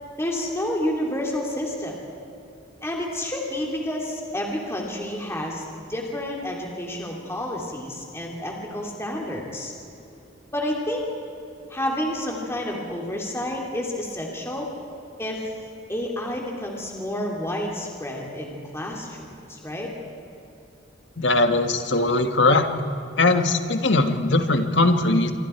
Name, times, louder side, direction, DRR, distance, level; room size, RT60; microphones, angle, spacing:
voice 1, 0.2-2.0 2.8-9.7 10.5-11.1 11.7-14.7 15.2-15.5 15.9-19.9, left 1 dB, 15° left, -1 dB, 3.1 m, -29 dB
voice 2, 21.2-22.7 23.2-25.3, left 2 dB, 80° left, 7 dB, 1.7 m, -20 dB
27.0 x 24.5 x 4.6 m, 2.8 s
head